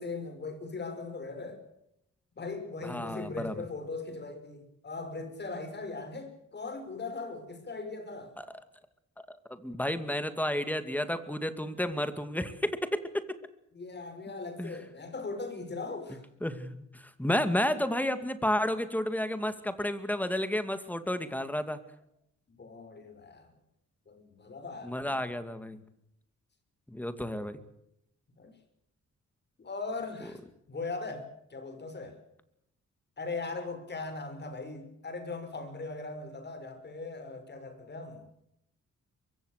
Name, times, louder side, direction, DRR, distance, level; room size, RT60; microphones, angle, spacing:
voice 1, 0.0-1.6 2.4-8.3 13.7-16.2 22.6-23.5 24.1-25.4 28.4-28.5 29.6-30.4 30.7-31.2 31.5-32.2 33.2-38.5, left 3 dB, 35° left, 8 dB, 5.9 m, -39 dB
voice 2, 2.8-3.5 8.4-8.5 9.2-9.3 9.6-13.2 14.6-14.7 16.4-21.8 24.8-25.8 26.9-27.6, left 1 dB, 5° left, 11 dB, 2.3 m, -31 dB
23.5 x 23.5 x 6.6 m, 0.77 s
wide cardioid pair, 130°, 29 cm